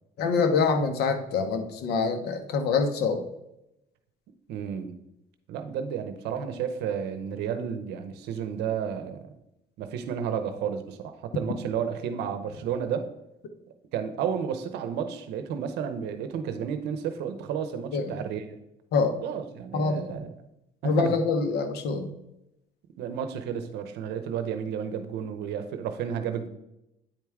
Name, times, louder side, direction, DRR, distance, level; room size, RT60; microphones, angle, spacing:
voice 1, 0.2-3.2 17.9-18.2 18.9-19.2 19.7-20.0 20.8-22.1, left 4 dB, 75° left, 7 dB, 1.0 m, -25 dB
voice 2, 4.5-4.9 5.5-9.2 9.8-13.1 13.9-18.6 19.2-20.3 20.8-21.1 23.0-26.5, right 7 dB, 85° right, 8 dB, 0.7 m, -32 dB
9.1 x 4.5 x 3.6 m, 0.87 s
cardioid pair, 110°, 17 cm